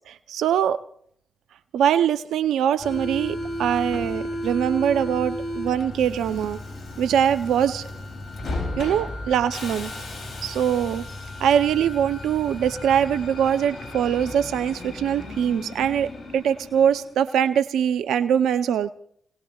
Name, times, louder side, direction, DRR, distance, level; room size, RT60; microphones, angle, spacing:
voice 1, 0.1-0.8 1.7-6.6 7.0-7.8 8.8-9.9 10.4-11.0 11.4-18.9, right 9 dB, 75° right, 12 dB, 0.6 m, -22 dB
Subway metro underground, 2.8-17.1, left 1 dB, 60° left, 7.6 m, -34 dB
29.0 x 19.0 x 2.4 m, 0.63 s
hypercardioid pair, 45°, 0 cm